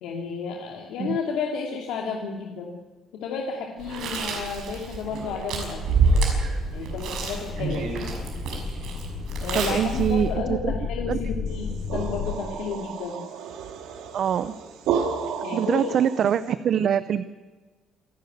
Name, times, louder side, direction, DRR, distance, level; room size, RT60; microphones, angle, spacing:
voice 1, 0.0-2.7 3.2-5.8 6.7-7.8 9.4-13.2 15.4-16.0 16.2-16.3, left 6 dB, 85° left, 0 dB, 2.7 m, -32 dB
Chewing mastication, 3.8-10.3, right 3 dB, 65° right, 6.1 m, -27 dB
sound 1, 5.8-12.4, left 5 dB, 45° left, 1.8 m, -33 dB
voice 2, 9.5-10.3 10.6-10.7 11.1-11.2 14.1-14.5 15.5-17.2, right 9 dB, 45° right, 13 dB, 0.6 m, -23 dB
sound 2, 11.5-16.5, right 7 dB, 80° right, 2.4 m, -32 dB
27.5 x 12.0 x 9.3 m, 1.3 s
cardioid pair, 165°, 0 cm